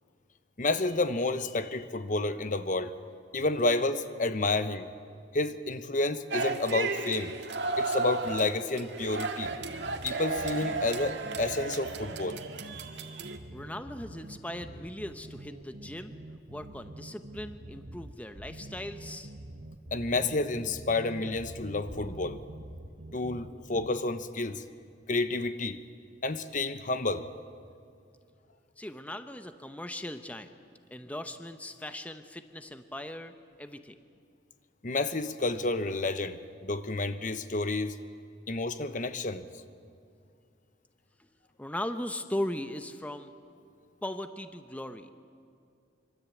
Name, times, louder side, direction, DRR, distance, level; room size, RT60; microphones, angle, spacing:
voice 1, 0.6-2.9 3.3-4.9 5.3-7.3 7.8-9.5 10.0-12.4 19.9-22.4 23.1-24.6 25.1-25.8 26.2-27.3 34.8-37.9 38.5-39.4, left 2 dB, 45° left, 11 dB, 1.0 m, -30 dB
sound 1, 6.3-13.4, right 3 dB, 85° right, 1.9 m, -34 dB
sound 2, 9.4-23.9, right 1 dB, 55° right, 1.3 m, -46 dB
voice 2, 13.5-16.1 16.5-19.3 28.8-30.5 30.9-33.9 41.6-43.3 44.0-45.1, left 1 dB, 10° left, 8 dB, 0.9 m, -38 dB
25.5 x 24.5 x 8.5 m, 2.4 s
head